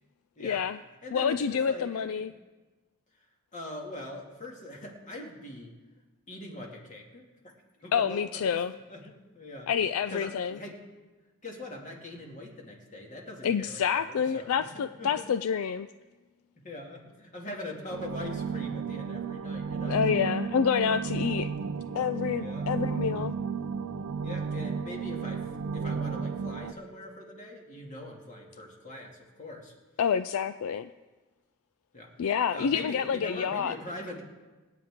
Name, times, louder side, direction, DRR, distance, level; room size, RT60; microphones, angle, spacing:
voice 1, 0.4-0.8 1.1-2.3 7.9-8.7 9.7-10.6 13.4-15.9 19.9-21.5 21.9-23.3 30.0-30.9 32.2-33.7, left 7 dB, 65° left, 12 dB, 0.3 m, -28 dB
voice 2, 1.0-2.1 3.2-3.3 3.5-5.7 6.3-7.5 7.8-9.7 10.1-10.8 11.4-15.2 16.6-20.0 21.8-22.0 22.4-22.7 24.2-29.7 31.9-34.2, left 1 dB, 35° left, 0 dB, 2.2 m, -42 dB
sound 1, 17.9-26.7, right 5 dB, 65° right, 0.5 m, -33 dB
sound 2, 21.8-29.7, right 3 dB, 10° left, 3.4 m, -56 dB
25.5 x 9.2 x 3.7 m, 1.2 s
head